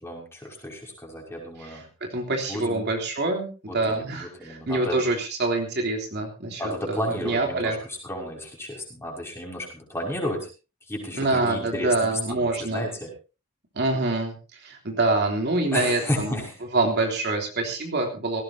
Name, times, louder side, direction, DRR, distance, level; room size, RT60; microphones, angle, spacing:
voice 1, 0.0-1.9 2.5-2.8 3.7-5.0 6.6-7.8 8.0-10.5 10.9-13.1 15.7-16.6, left 1 dB, 10° left, -1 dB, 6.0 m, -32 dB
voice 2, 2.1-7.8 11.1-12.8 13.7-16.4 16.7-18.4, right 2 dB, 50° right, 2 dB, 3.3 m, -26 dB
18.0 x 17.5 x 2.8 m, 0.32 s
head